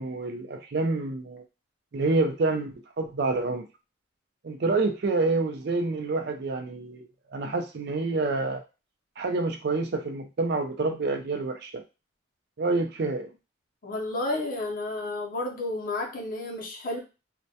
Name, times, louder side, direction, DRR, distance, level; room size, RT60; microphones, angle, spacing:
voice 1, 0.0-1.4 1.9-3.7 4.4-8.6 9.2-11.8 12.6-13.3, right 3 dB, 50° right, 0.4 m, -28 dB
voice 2, 13.8-17.0, left 2 dB, 45° left, 0.5 m, -31 dB
2.1 x 2.1 x 2.7 m
head